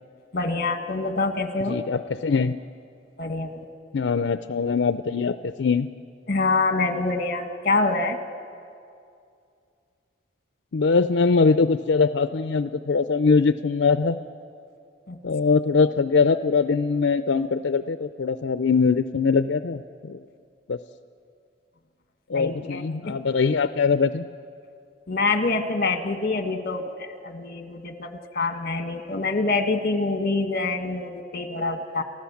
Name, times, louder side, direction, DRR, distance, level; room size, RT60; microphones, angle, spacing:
voice 1, 0.3-1.8 3.2-3.7 6.3-8.2 15.1-15.2 22.3-23.2 25.1-32.0, left 3 dB, 55° left, 6 dB, 1.6 m, -26 dB
voice 2, 1.7-2.6 3.9-5.9 10.7-14.2 15.2-20.2 20.7-20.8 22.3-24.3, left 4 dB, 90° left, 11 dB, 0.5 m, -22 dB
30.0 x 14.5 x 7.2 m, 2.4 s
head